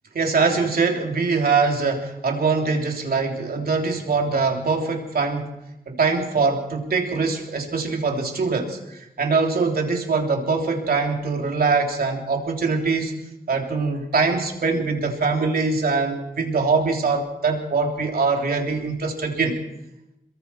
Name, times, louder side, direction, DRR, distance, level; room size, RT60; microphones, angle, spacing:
voice 1, 0.1-5.5 5.9-8.8 9.2-13.1 13.5-19.6, right 4 dB, 90° right, 2 dB, 3.2 m, -23 dB
27.5 x 22.0 x 4.5 m, 0.89 s
wide cardioid pair, 130°, 15 cm